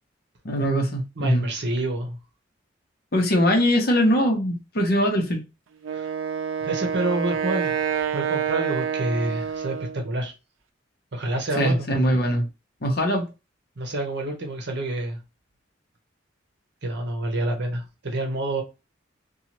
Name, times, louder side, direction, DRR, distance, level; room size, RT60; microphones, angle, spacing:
voice 1, 0.4-1.4 3.1-5.4 11.6-12.5 12.8-13.3, equal, 55° left, 0.8 m, -21 dB
voice 2, 1.2-2.2 5.9-6.1 6.6-10.3 11.1-11.9 13.8-15.2 16.8-18.6, right 1 dB, 60° right, 0.9 m, -28 dB
Wind instrument woodwind instrument, 5.8-10.1, right 8 dB, 85° right, 0.4 m, -27 dB
2.8 x 2.3 x 2.9 m
head